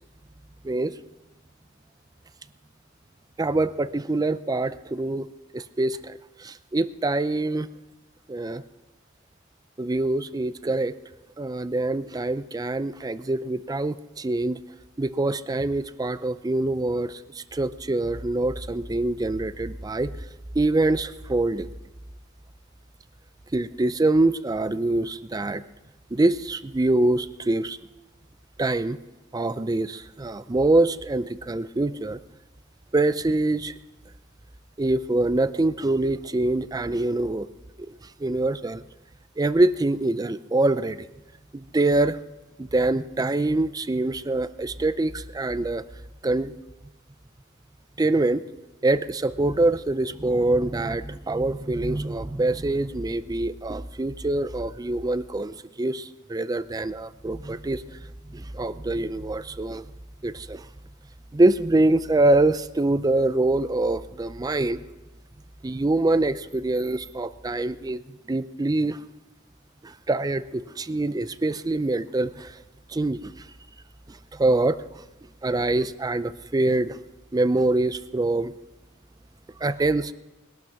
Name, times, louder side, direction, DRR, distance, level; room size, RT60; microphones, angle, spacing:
voice 1, 3.4-5.3 5.5-7.7 8.3-8.6 9.8-10.9 11.4-14.6 15.0-20.1 20.5-21.7 23.5-25.6 26.1-27.8 28.6-29.0 29.3-32.2 32.9-33.7 34.8-37.5 37.8-37.9 38.2-38.8 39.4-41.1 41.5-42.2 42.6-45.8 46.2-46.5 48.0-48.5 48.8-58.0 58.3-59.9 60.2-60.7 61.3-64.8 65.6-68.0 68.3-69.0 69.8-72.6 72.9-73.4 74.1-75.0 75.4-77.0 77.3-78.5 79.6-80.1, right 2 dB, 20° right, 14 dB, 0.5 m, -24 dB
20.5 x 12.0 x 6.0 m, 1.0 s
head